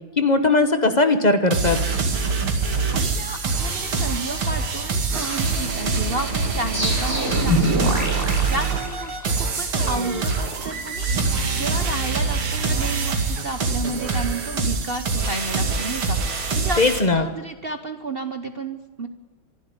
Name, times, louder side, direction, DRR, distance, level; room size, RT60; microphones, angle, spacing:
voice 1, 0.2-1.8 16.8-17.3, left 3 dB, 30° left, 8 dB, 0.9 m, -18 dB
sound 1, 1.5-17.0, right 4 dB, 80° right, 3.1 m, -24 dB
voice 2, 2.9-16.8 17.1-19.1, right 2 dB, 55° right, 8 dB, 0.6 m, -32 dB
sound 2, 6.7-9.5, equal, 5° right, 5.5 m, -25 dB
25.0 x 11.5 x 9.7 m, 1.3 s
omnidirectional pair, 2.3 m